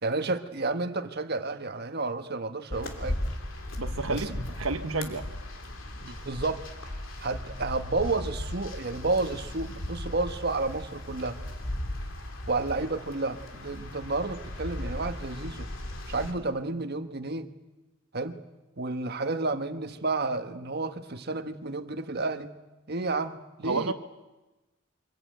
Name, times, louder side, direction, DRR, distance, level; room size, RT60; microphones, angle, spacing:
voice 1, 0.0-3.2 4.1-4.4 6.0-11.4 12.5-15.7 16.1-17.5 18.1-18.4 18.8-22.6 22.9-23.9, right 3 dB, 50° right, 7 dB, 1.5 m, -31 dB
sound 1, 2.7-16.3, left 1 dB, 65° left, 3.0 m, -37 dB
voice 2, 3.8-4.3 4.6-5.2 23.6-23.9, right 3 dB, 80° right, 7 dB, 1.2 m, -30 dB
25.0 x 21.5 x 9.2 m, 1.1 s
head